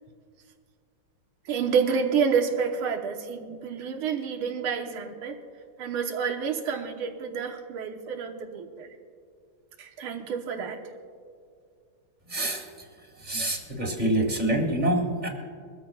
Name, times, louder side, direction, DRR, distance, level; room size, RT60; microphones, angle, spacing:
voice 1, 1.5-5.4 5.8-8.9 9.8-10.8, right 6 dB, 90° right, 4 dB, 1.9 m, -29 dB
voice 2, 12.2-12.9 13.2-15.3, right 1 dB, 20° right, 2 dB, 1.7 m, -26 dB
23.0 x 14.0 x 2.3 m, 2.2 s
omnidirectional pair, 2.3 m